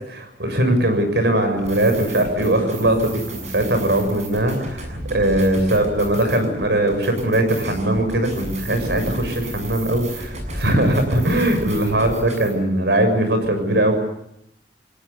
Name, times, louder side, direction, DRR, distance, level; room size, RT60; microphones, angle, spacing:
voice 1, 0.1-14.0, right 1 dB, 70° right, 7 dB, 6.7 m, -20 dB
sound 1, 1.6-12.5, right 1 dB, 45° right, 7.2 m, -34 dB
29.0 x 19.0 x 7.1 m, 0.76 s
head